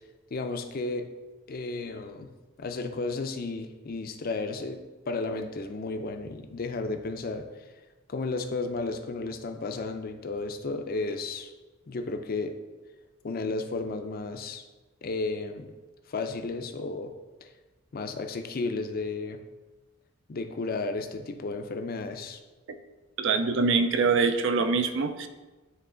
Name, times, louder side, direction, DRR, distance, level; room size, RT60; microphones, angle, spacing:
voice 1, 0.3-1.1 1.5-2.3 2.6-4.8 5.1-7.5 8.1-11.5 11.9-12.5 13.2-14.6 15.0-15.7 16.1-17.1 17.4-17.5 17.9-19.4 20.3-22.4, left 3 dB, 45° left, 6 dB, 0.4 m, -33 dB
voice 2, 23.2-25.3, right 4 dB, 60° right, 9 dB, 0.5 m, -24 dB
9.2 x 3.1 x 3.7 m, 1.2 s
head